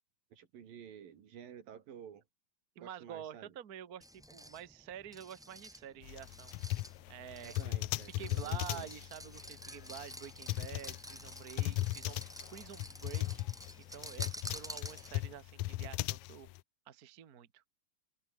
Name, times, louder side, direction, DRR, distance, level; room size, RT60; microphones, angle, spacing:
voice 1, 0.3-2.2 2.8-3.5 7.4-8.9, right 8 dB, 80° right, 4.3 m, -51 dB
voice 2, 2.8-6.5 7.1-7.6 8.2-12.2 12.5-16.5 16.9-17.6, right 9 dB, 50° right, 1.1 m, -48 dB
sound 1, 4.0-15.4, equal, ahead, 0.7 m, -50 dB
sound 2, 6.0-16.6, left 18 dB, 80° left, 1.7 m, -38 dB
omnidirectional pair, 4.0 m